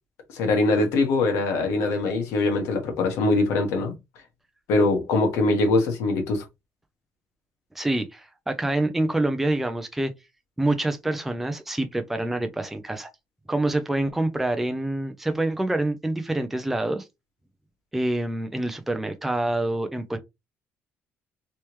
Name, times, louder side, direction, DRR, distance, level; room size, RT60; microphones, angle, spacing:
voice 1, 0.3-3.9 4.7-6.4, left 2 dB, 85° left, 1.3 m, -22 dB
voice 2, 7.8-10.1 10.6-13.1 13.5-17.0 17.9-20.2, right 1 dB, 5° right, 0.4 m, -26 dB
3.3 x 3.0 x 3.1 m
cardioid pair, 140°, 5 cm